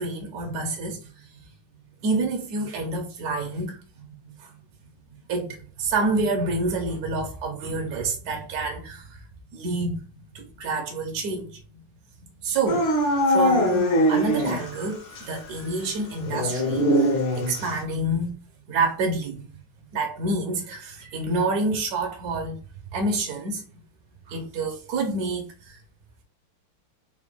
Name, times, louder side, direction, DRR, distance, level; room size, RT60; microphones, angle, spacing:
voice 1, 0.0-1.4 2.0-4.6 5.3-9.2 9.5-11.6 12.4-13.0 13.3-18.3 18.7-19.5 19.9-22.6 22.9-23.6 24.3-25.8, right 2 dB, 70° right, 0.9 m, -28 dB
Dog / Siren, 12.7-14.8 15.2-15.3 16.3-17.8, equal, 75° left, 1.6 m, -22 dB
3.9 x 2.2 x 3.3 m
omnidirectional pair, 2.3 m